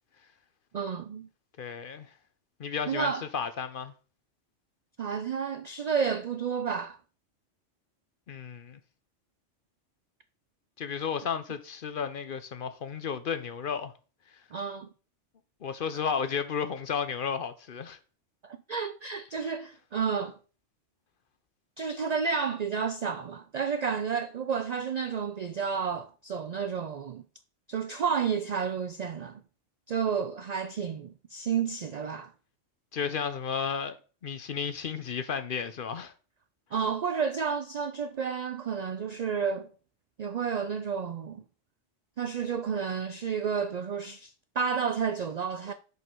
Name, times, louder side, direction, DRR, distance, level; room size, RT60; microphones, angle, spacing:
voice 1, 0.7-1.3 2.9-3.2 5.0-7.0 14.5-14.9 18.4-20.4 21.8-27.2 27.7-29.4 29.9-32.3 36.7-39.7 40.2-41.4 42.2-45.7, right 6 dB, 70° right, 0.3 m, -31 dB
voice 2, 1.6-2.1 2.6-3.9 8.3-8.8 10.8-13.9 14.3-14.4 15.6-18.0 19.3-19.5 32.9-34.0 34.2-36.1, left 6 dB, 55° left, 0.7 m, -33 dB
6.4 x 5.2 x 4.5 m
omnidirectional pair, 1.2 m